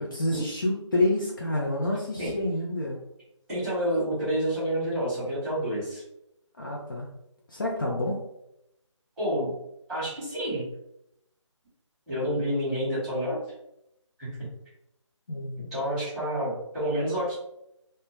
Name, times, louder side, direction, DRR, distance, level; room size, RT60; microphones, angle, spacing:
voice 1, 0.0-3.0 6.6-7.1 7.5-8.2 15.3-15.8, left 1 dB, 40° left, -3 dB, 0.4 m, -28 dB
voice 2, 3.5-6.0 9.2-9.5 9.9-10.7 12.1-13.4 14.2-14.3 15.5-17.3, equal, 5° right, -13 dB, 1.1 m, -29 dB
2.2 x 2.1 x 2.9 m, 0.82 s
figure-of-eight pair, 165°, 16 cm